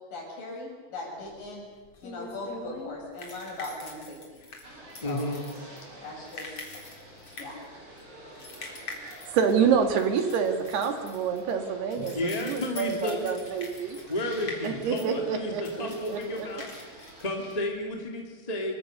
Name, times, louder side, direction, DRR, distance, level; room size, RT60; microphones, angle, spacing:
voice 1, 0.1-1.7 2.0-4.4 5.0-5.3 6.0-6.8 7.4-7.6, left 2 dB, 55° left, -1 dB, 7.9 m, -39 dB
sound 1, 1.3-18.0, left 3 dB, 35° left, 4.6 m, -45 dB
sound 2, 4.6-17.6, right 1 dB, 45° right, 9.3 m, -49 dB
voice 2, 5.0-5.4 12.0-13.3 14.1-16.7 17.0-18.8, left 1 dB, 10° left, 1 dB, 2.3 m, -32 dB
voice 3, 9.0-14.0 14.6-16.5, right 6 dB, 75° right, 6 dB, 4.0 m, -27 dB
26.0 x 24.0 x 6.8 m, 1.3 s
omnidirectional pair, 4.7 m